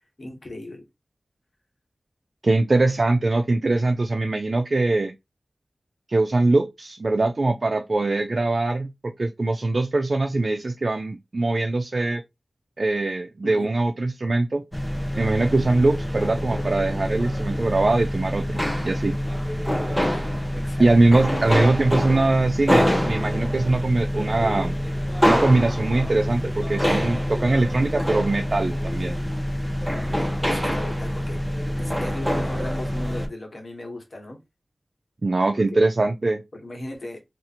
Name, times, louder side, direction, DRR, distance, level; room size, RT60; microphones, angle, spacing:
voice 1, 0.2-0.8 13.4-13.7 19.9-20.2 20.5-20.9 30.1-31.4 31.8-34.4 35.5-35.8 36.5-37.2, left 1 dB, 60° left, 1.3 m, -37 dB
voice 2, 2.4-5.1 6.1-12.2 12.8-14.6 15.2-19.1 20.8-24.7 25.2-29.2 35.2-36.4, right 2 dB, 55° right, 0.3 m, -22 dB
sound 1, 14.7-33.3, equal, ahead, 0.8 m, -25 dB
2.6 x 2.4 x 4.2 m
wide cardioid pair, 60°, 0 cm